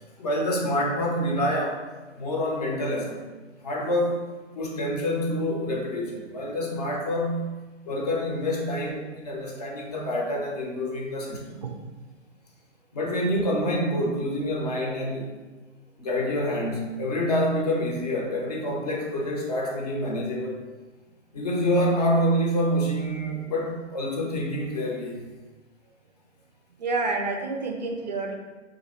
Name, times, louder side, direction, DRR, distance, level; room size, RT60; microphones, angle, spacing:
voice 1, 0.2-1.8 2.2-3.2 3.6-4.2 4.5-7.5 7.9-11.6 12.9-15.3 16.0-20.6 21.3-25.2, equal, 35° left, -1 dB, 0.6 m, -27 dB
voice 2, 26.8-28.3, right 3 dB, 40° right, 2 dB, 0.4 m, -28 dB
2.8 x 2.5 x 4.1 m, 1.2 s
hypercardioid pair, 145°, 37 cm